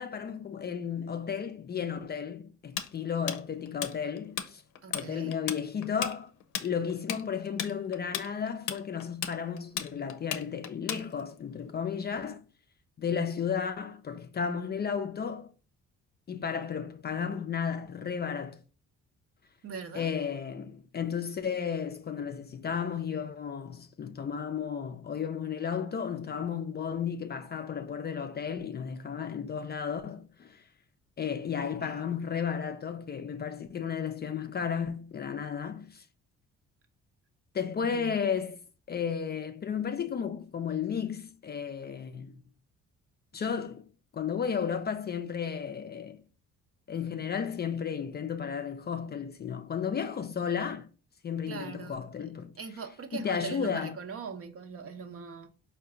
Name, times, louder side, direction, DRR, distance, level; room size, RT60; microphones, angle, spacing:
voice 1, 0.0-4.6 4.9-6.3 6.6-12.4 13.0-15.5 16.3-18.6 19.9-30.6 31.2-36.0 37.5-38.6 38.9-42.4 43.3-43.8 44.1-46.2 46.9-50.9 51.2-52.5 53.1-53.9, left 7 dB, 35° left, 0.4 m, -33 dB
Tools, 2.8-4.5 4.8-5.1 5.3-11.4, left 9 dB, 80° left, 0.6 m, -35 dB
voice 2, 4.8-5.4 19.6-20.1 31.7-32.0 37.8-38.2 51.5-52.0 52.6-55.5, right 5 dB, 50° right, 0.7 m, -41 dB
4.5 x 2.2 x 3.8 m
cardioid pair, 90°, 30 cm